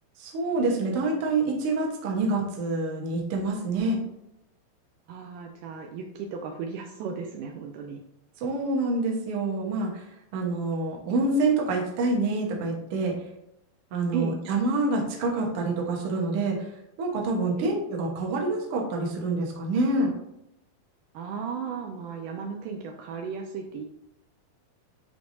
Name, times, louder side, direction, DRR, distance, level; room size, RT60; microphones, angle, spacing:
voice 1, 0.2-4.0 8.4-10.0 10.3-13.1 13.9-16.6 17.0-20.1, right 2 dB, 65° right, -1 dB, 1.3 m, -27 dB
voice 2, 5.1-8.0 14.1-14.4 17.6-17.8 21.1-23.8, right 6 dB, 90° right, 3 dB, 1.8 m, -35 dB
10.5 x 3.5 x 2.7 m, 0.82 s
omnidirectional pair, 4.4 m